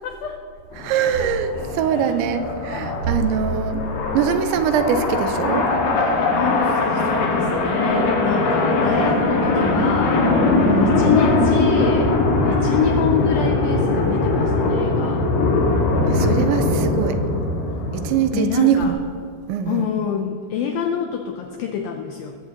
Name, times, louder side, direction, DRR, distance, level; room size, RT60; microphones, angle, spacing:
voice 1, 0.0-0.4 1.2-1.3 1.9-2.2 6.3-10.2 10.8-12.1 12.5-15.3 18.3-18.9 19.7-22.4, left 8 dB, 85° left, 4 dB, 2.0 m, -26 dB
sound 1, 0.7-18.2, left 2 dB, 65° left, 3.7 m, -21 dB
voice 2, 0.8-3.8 4.1-5.7 10.6-11.0 16.1-17.2 17.9-19.0 19.5-19.9, right 8 dB, 90° right, 8 dB, 3.2 m, -22 dB
21.5 x 15.0 x 3.0 m, 2.5 s
omnidirectional pair, 5.1 m